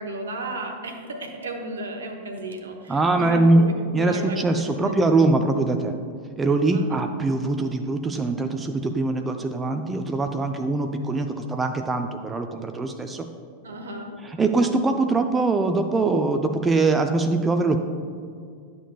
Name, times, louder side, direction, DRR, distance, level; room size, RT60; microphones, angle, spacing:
voice 1, 0.0-5.3 6.7-7.0 13.6-14.2, right 2 dB, 70° right, 4 dB, 0.9 m, -34 dB
voice 2, 2.9-3.7 3.9-5.9 6.4-13.3 14.2-17.8, right 3 dB, 15° right, 6 dB, 0.4 m, -22 dB
11.0 x 6.7 x 2.3 m, 2.2 s
figure-of-eight pair, 90°, 0 cm